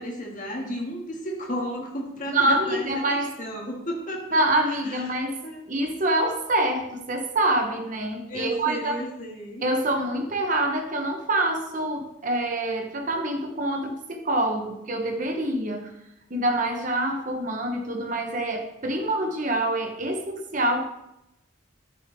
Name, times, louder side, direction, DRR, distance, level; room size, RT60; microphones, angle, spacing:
voice 1, 0.0-5.1 5.4-5.6 8.3-9.7, equal, 40° left, -1 dB, 1.9 m, -34 dB
voice 2, 2.3-3.4 4.3-9.0 9.6-15.9 16.3-20.9, right 1 dB, 40° right, 4 dB, 0.9 m, -26 dB
10.5 x 7.0 x 3.4 m, 0.88 s
head